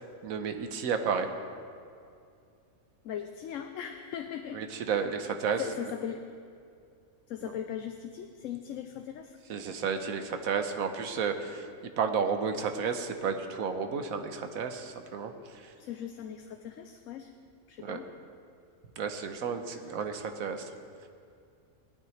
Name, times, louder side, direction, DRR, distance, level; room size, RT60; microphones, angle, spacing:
voice 1, 0.2-1.3 4.5-5.6 9.5-11.6 12.0-15.7 17.8-18.0 19.0-20.7, right 6 dB, 85° right, 7 dB, 1.3 m, -32 dB
voice 2, 3.0-4.6 5.6-6.2 7.3-9.4 15.8-17.3 17.7-18.1 19.6-19.9, left 9 dB, 70° left, 6 dB, 1.0 m, -39 dB
18.0 x 12.0 x 3.2 m, 2.4 s
omnidirectional pair, 1.4 m